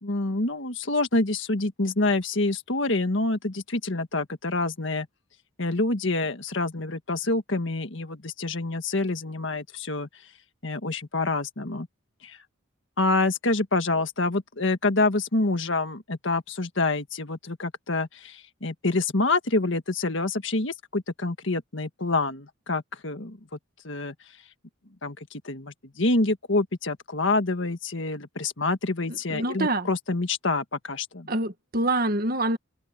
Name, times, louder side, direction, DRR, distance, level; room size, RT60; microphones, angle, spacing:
voice 1, 0.0-5.1 5.6-10.1 10.6-11.9 12.2-12.4 13.0-23.6 23.8-24.1 25.0-31.3, left 2 dB, 65° left, 1.7 m, -27 dB
voice 2, 29.1-29.9 31.3-32.6, right 2 dB, 45° right, 1.8 m, -26 dB
head